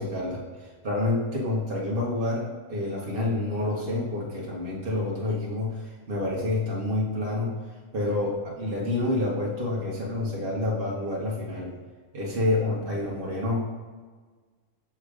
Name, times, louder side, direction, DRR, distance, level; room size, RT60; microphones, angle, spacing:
voice 1, 0.0-7.6 7.9-11.7 12.1-13.7, left 2 dB, 45° right, -4 dB, 1.1 m, -28 dB
6.2 x 3.5 x 4.8 m, 1.5 s
omnidirectional pair, 1.5 m